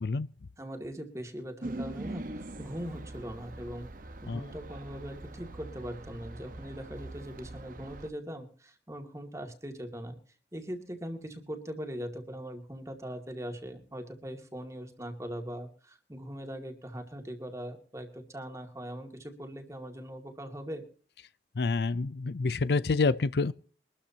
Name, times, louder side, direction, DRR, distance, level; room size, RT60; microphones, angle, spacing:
voice 1, 0.6-3.9 4.2-10.2 10.5-20.9, equal, 15° right, 2.3 m, -41 dB
sound 1, 1.6-8.1, right 2 dB, 50° right, 1.1 m, -42 dB
voice 2, 21.6-23.5, left 3 dB, 70° left, 0.5 m, -27 dB
23.5 x 13.0 x 2.8 m
head